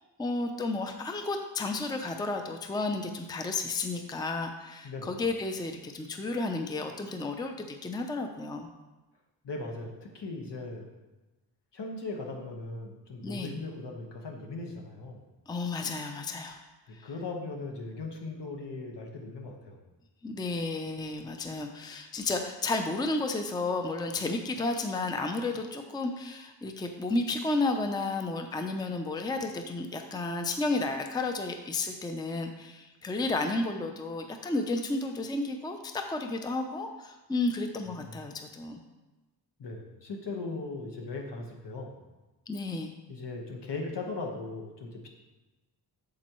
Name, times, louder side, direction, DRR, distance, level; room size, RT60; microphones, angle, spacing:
voice 1, 0.2-8.7 13.2-13.5 15.5-16.6 16.9-17.0 20.2-38.8 42.5-42.9, left 3 dB, 10° left, 5 dB, 0.4 m, -32 dB
voice 2, 9.4-10.9 11.7-15.2 17.0-19.8 37.9-38.4 39.6-42.0 43.1-45.1, left 3 dB, 80° left, 1 dB, 1.4 m, -38 dB
8.6 x 6.9 x 3.0 m, 1.1 s
wide cardioid pair, 180°, 41 cm